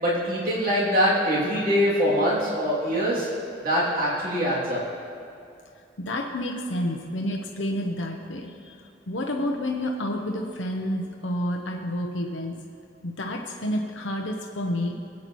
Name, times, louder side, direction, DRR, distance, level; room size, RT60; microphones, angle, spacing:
voice 1, 0.0-3.3 3.6-4.8, equal, 50° right, -7 dB, 2.9 m, -23 dB
voice 2, 6.1-8.8 9.1-12.5 13.0-15.0, left 1 dB, 80° left, 1 dB, 0.9 m, -29 dB
21.5 x 8.5 x 3.1 m, 2.4 s
head